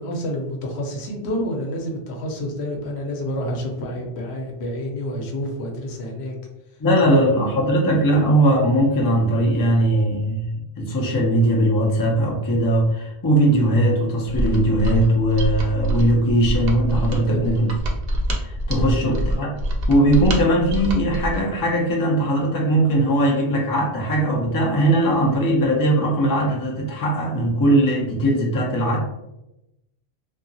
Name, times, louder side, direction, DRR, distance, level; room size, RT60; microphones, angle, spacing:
voice 1, 0.0-6.4 7.4-7.5 17.3-17.6 18.7-19.0, equal, 75° left, 1 dB, 0.9 m, -29 dB
voice 2, 6.8-17.7 18.4-19.5 19.9-29.0, right 1 dB, 25° left, -3 dB, 0.4 m, -19 dB
Mechanisms, 14.3-21.5, right 1 dB, 65° right, 0.7 m, -25 dB
2.8 x 2.3 x 2.6 m, 0.90 s
omnidirectional pair, 1.1 m